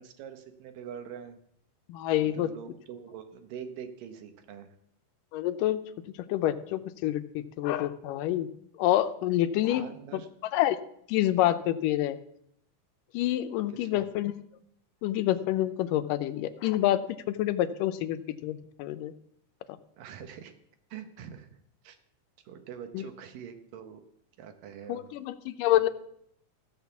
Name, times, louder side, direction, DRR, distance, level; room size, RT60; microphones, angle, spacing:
voice 1, 0.0-1.4 2.2-4.7 9.7-10.3 13.7-14.0 20.0-20.5 20.9-22.0 22.5-24.0 24.4-25.0, right 8 dB, 90° right, 8 dB, 2.9 m, -44 dB
voice 2, 1.9-2.5 5.3-5.8 6.3-8.5 8.8-9.9 10.1-10.8 11.1-12.2 13.1-14.3 15.0-17.0 17.3-19.1 19.7-19.8 22.9-23.1 24.9-25.9, left 13 dB, 85° left, 11 dB, 2.3 m, -27 dB
15.5 x 6.5 x 7.0 m, 0.71 s
omnidirectional pair, 3.8 m